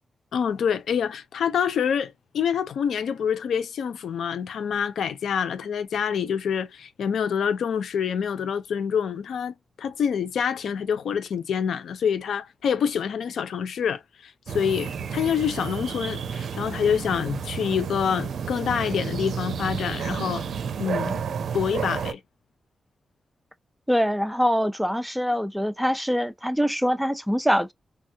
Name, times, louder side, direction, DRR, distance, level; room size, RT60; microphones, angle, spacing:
voice 1, 0.3-20.4 20.8-21.2 21.5-22.2, left 7 dB, 85° left, 0.4 m, -26 dB
sound 1, 14.5-22.1, right 6 dB, 80° right, 0.5 m, -31 dB
voice 2, 23.9-27.7, equal, ahead, 0.5 m, -24 dB
3.5 x 2.1 x 2.7 m
cardioid pair, 65°, 0 cm